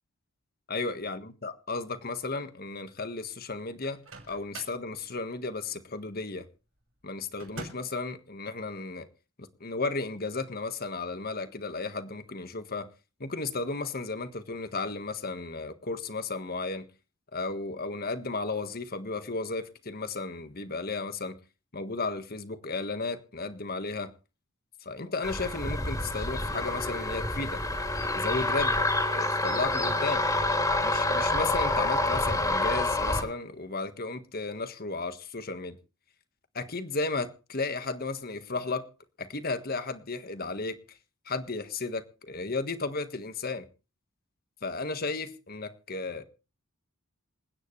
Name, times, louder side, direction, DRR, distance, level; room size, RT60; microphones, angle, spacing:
voice 1, 0.7-4.0 4.3-6.4 7.0-9.1 9.4-12.9 13.2-16.8 17.3-21.3 21.7-24.1 24.8-27.6 28.1-30.3 30.8-35.8 36.5-38.9 39.2-40.8 41.2-43.6 44.6-46.2, left 3 dB, 45° left, 1.6 m, -34 dB
Microwave oven, 3.8-4.9 7.4-8.0, right 2 dB, 70° right, 6.3 m, -43 dB
sound 1, 25.2-33.2, left 2 dB, 15° left, 3.0 m, -27 dB
27.5 x 9.7 x 3.3 m
head